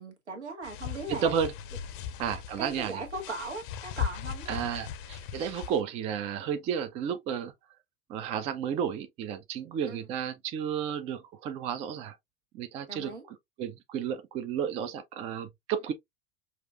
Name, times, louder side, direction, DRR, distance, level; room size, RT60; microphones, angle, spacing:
voice 1, 0.0-1.3 2.6-4.6 9.9-10.0 12.9-13.2, right 3 dB, 80° right, 1.2 m, -38 dB
sound 1, 0.6-5.8, left 9 dB, 50° left, 0.6 m, -38 dB
voice 2, 1.1-1.5 2.2-3.0 4.5-7.5 8.1-12.2 12.5-13.1 13.6-15.9, right 8 dB, 20° right, 0.3 m, -32 dB
5.6 x 2.4 x 2.3 m
figure-of-eight pair, 85°, 34 cm